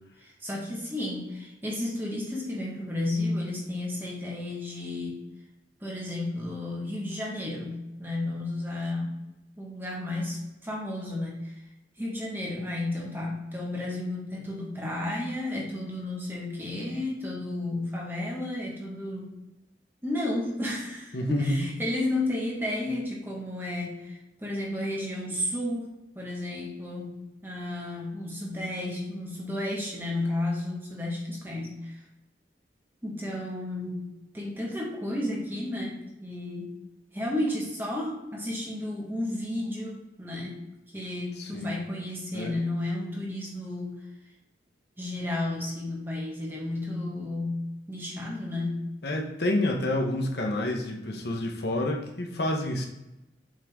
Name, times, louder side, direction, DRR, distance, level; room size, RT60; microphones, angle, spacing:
voice 1, 0.2-5.2 5.8-9.1 9.6-11.6 12.0-19.3 20.0-32.0 33.0-34.1 34.3-36.8 37.1-40.6 40.9-44.0 45.0-48.9, left 1 dB, 10° right, -2 dB, 1.5 m, -32 dB
voice 2, 21.1-21.7 41.4-41.7 42.3-42.5 49.0-52.9, left 1 dB, 65° left, 2 dB, 1.0 m, -28 dB
7.6 x 3.8 x 3.6 m, 0.94 s
head